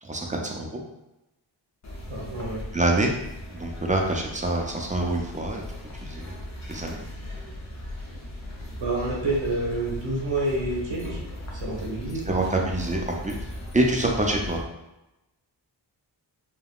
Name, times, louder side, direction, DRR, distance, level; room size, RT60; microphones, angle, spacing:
voice 1, 0.0-0.8 2.7-3.1 3.5-5.6 6.0-6.4 6.7-7.0 12.3-13.4 13.7-14.6, right 2 dB, 20° right, 0 dB, 0.4 m, -26 dB
sound 1, 1.8-14.6, left 1 dB, 40° left, 0.7 m, -38 dB
voice 2, 2.1-2.6 8.7-11.2 11.5-12.3, right 2 dB, 75° right, -3 dB, 1.0 m, -28 dB
3.5 x 2.2 x 2.3 m, 0.94 s
wide cardioid pair, 95°, 45 cm